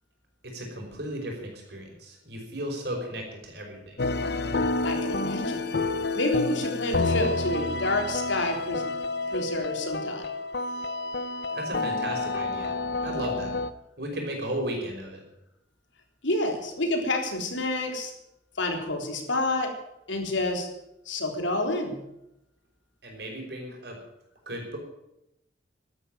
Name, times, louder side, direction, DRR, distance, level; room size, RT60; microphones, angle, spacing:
voice 1, 0.4-4.0 11.5-12.8 13.0-13.5 14.0-15.2 23.0-24.0 24.5-24.8, right 1 dB, 60° right, 2 dB, 5.4 m, -35 dB
sound 1, 4.0-13.7, left 3 dB, 60° left, 0.8 m, -29 dB
voice 2, 4.8-5.6 6.2-8.8 9.3-10.2 16.2-18.1 18.6-19.7 20.1-20.7 21.1-22.0, left 2 dB, 90° left, 3 dB, 3.6 m, -28 dB
12.5 x 12.0 x 9.1 m, 0.85 s
head